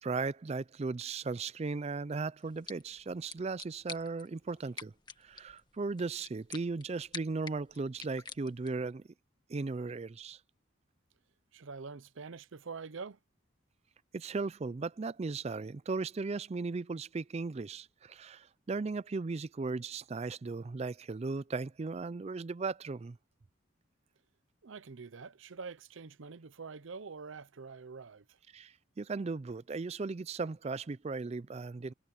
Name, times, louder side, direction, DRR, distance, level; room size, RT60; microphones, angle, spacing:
voice 1, 0.0-4.9 5.2-9.0 9.5-10.4 14.1-23.2 28.5-31.9, right 4 dB, 30° right, 0.4 m, -37 dB
sound 1, 2.4-8.9, left 5 dB, 20° left, 1.7 m, -49 dB
voice 2, 11.5-13.2 24.6-28.4, right 4 dB, 70° right, 0.6 m, -45 dB
head